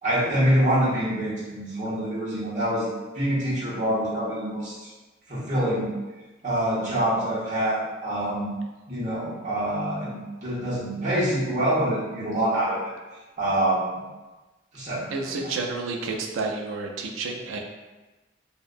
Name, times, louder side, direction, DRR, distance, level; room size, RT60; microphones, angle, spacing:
voice 1, 0.0-2.9 3.1-4.9 5.3-5.9 6.4-8.5 8.9-12.9 13.4-14.0 14.7-15.5, right 1 dB, 40° right, -9 dB, 0.9 m, -25 dB
voice 2, 15.1-17.6, right 3 dB, 80° right, 2 dB, 0.4 m, -30 dB
2.6 x 2.1 x 2.4 m, 1.2 s
head